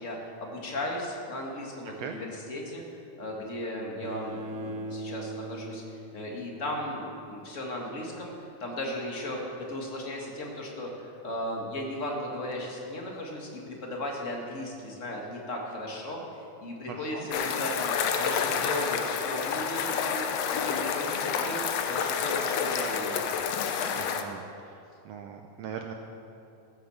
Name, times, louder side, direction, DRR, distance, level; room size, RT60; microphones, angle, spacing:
voice 1, 0.0-23.5, left 1 dB, 30° left, -1 dB, 1.6 m, -36 dB
voice 2, 1.8-2.2 16.9-17.3 17.6-17.7 23.9-24.8 25.0-25.9, right 7 dB, 75° right, 3 dB, 1.6 m, -40 dB
Bowed string instrument, 4.0-7.1, right 2 dB, 90° right, 2.6 m, -40 dB
sound 1, 17.3-24.2, left 7 dB, 70° left, 1.6 m, -29 dB
15.0 x 7.9 x 7.1 m, 2.6 s
omnidirectional pair, 3.5 m